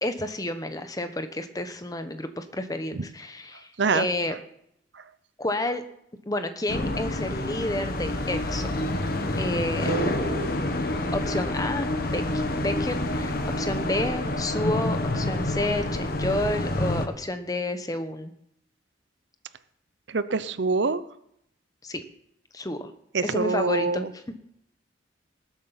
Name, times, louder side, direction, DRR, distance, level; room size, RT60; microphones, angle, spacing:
voice 1, 0.0-3.7 3.9-4.3 5.4-5.8 6.3-8.8 9.4-10.1 11.1-12.2 12.5-18.3 21.8-22.0 22.5-22.9 23.2-24.2, left 1 dB, 20° left, 9 dB, 1.0 m, -30 dB
sound 1, 6.7-17.1, left 1 dB, 50° left, 1.3 m, -28 dB
voice 2, 9.9-10.5 20.1-21.0 23.1-24.1, right 4 dB, 65° right, 14 dB, 0.7 m, -25 dB
19.5 x 8.2 x 5.7 m, 0.75 s
head